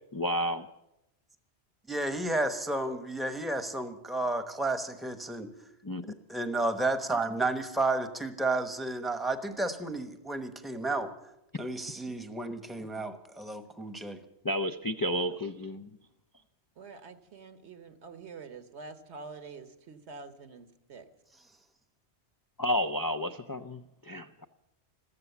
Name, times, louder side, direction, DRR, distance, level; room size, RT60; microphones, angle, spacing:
voice 1, 0.1-0.7 5.8-6.1 14.4-15.9 22.6-24.5, equal, 35° left, 6 dB, 0.3 m, -31 dB
voice 2, 1.9-5.5 6.3-11.1 11.5-14.2, right 2 dB, ahead, 9 dB, 0.9 m, -32 dB
voice 3, 16.8-21.1, right 4 dB, 75° right, 10 dB, 1.4 m, -46 dB
14.5 x 13.5 x 7.0 m, 0.86 s
omnidirectional pair, 1.1 m